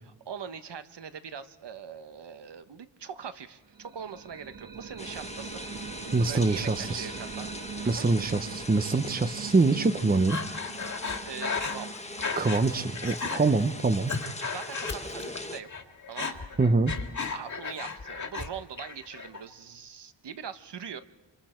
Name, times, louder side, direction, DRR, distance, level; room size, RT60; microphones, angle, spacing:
voice 1, 0.0-5.6 6.1-7.5 7.8-8.1 11.3-11.9 14.4-15.7 16.1-16.5 17.3-21.0, right 7 dB, 60° right, 10 dB, 1.2 m, -42 dB
sound 1, 3.7-13.5, right 5 dB, 45° right, 1.5 m, -42 dB
sound 2, 5.0-15.6, left 2 dB, 15° left, 1.3 m, -41 dB
voice 2, 6.1-7.1 7.9-10.4 12.4-14.1 16.6-16.9, right 3 dB, 20° right, 10 dB, 0.8 m, -24 dB
Breathing, 10.3-12.7 13.0-13.4 13.9-15.4 15.7-18.5 18.8-19.4, left 5 dB, 40° left, 2.2 m, -34 dB
28.0 x 27.5 x 4.5 m, 1.3 s
wide cardioid pair, 115°, 46 cm